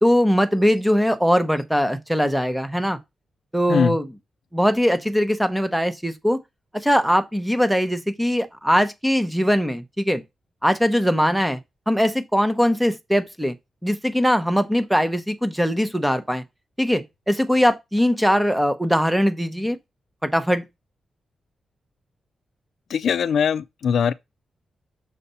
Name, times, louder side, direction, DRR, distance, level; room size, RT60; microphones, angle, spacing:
voice 1, 0.0-3.0 3.5-4.1 4.5-6.4 6.7-10.2 10.6-11.6 11.9-13.5 13.8-16.4 16.8-19.8 20.2-20.7, equal, ahead, 0.8 m, -21 dB
voice 2, 22.9-24.1, left 7 dB, 65° left, 0.4 m, -21 dB
6.5 x 4.2 x 5.4 m
wide cardioid pair, 175°, 0 cm